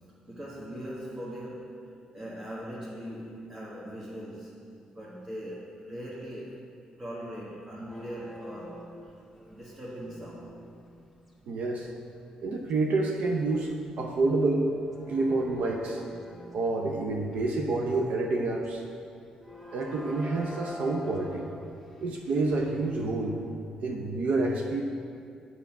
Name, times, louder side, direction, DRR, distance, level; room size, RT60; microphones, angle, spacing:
voice 1, 0.2-4.5 4.9-6.6 7.0-9.1 9.5-10.6 15.2-15.4, equal, 35° right, -6 dB, 1.4 m, -40 dB
sound 1, 7.9-11.3 11.9-12.1 12.7-18.1 18.6-18.9 19.4-23.3, left 1 dB, 5° right, 1.6 m, -46 dB
voice 2, 11.5-11.9 12.4-14.7 15.1-16.0 16.5-18.8 19.7-21.4 22.0-23.4 23.8-24.8, right 2 dB, 70° right, 1 dB, 0.7 m, -28 dB
7.1 x 5.7 x 5.9 m, 2.4 s
cardioid pair, 75°, 2 cm